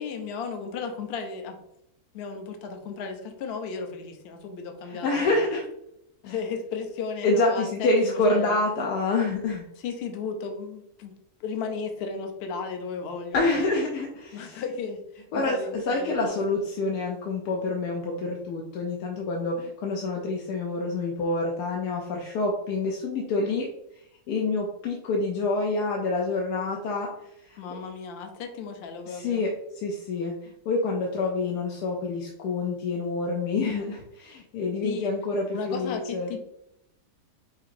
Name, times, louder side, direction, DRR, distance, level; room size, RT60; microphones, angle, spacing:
voice 1, 0.0-1.6 2.1-5.5 6.2-8.6 9.8-11.1 11.4-13.7 14.3-16.4 27.6-29.4 34.8-35.1 35.5-36.4, left 5 dB, 55° left, 5 dB, 0.7 m, -35 dB
voice 2, 4.9-5.6 6.2-6.3 7.2-9.6 13.3-14.6 15.3-15.6 15.9-23.7 24.3-27.1 27.4-27.6 29.1-36.3, left 3 dB, 80° left, 0 dB, 1.2 m, -27 dB
5.8 x 2.8 x 2.5 m, 0.81 s
omnidirectional pair, 1.7 m